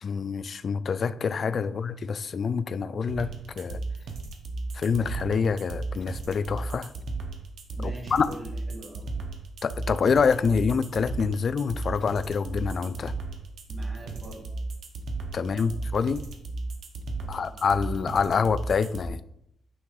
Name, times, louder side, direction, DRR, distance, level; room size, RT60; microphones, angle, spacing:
voice 1, 0.0-3.8 4.7-6.9 7.8-8.3 9.6-13.1 15.3-16.2 17.3-19.2, left 5 dB, 50° left, 14 dB, 0.3 m, -26 dB
voice 2, 1.4-1.8 7.7-9.1 13.7-14.5 15.5-15.9 17.2-17.6, equal, 30° right, -1 dB, 2.2 m, -44 dB
sound 1, 3.1-19.1, right 3 dB, 80° right, 1.0 m, -34 dB
9.3 x 3.5 x 3.9 m, 0.76 s
cardioid pair, 110°, 0 cm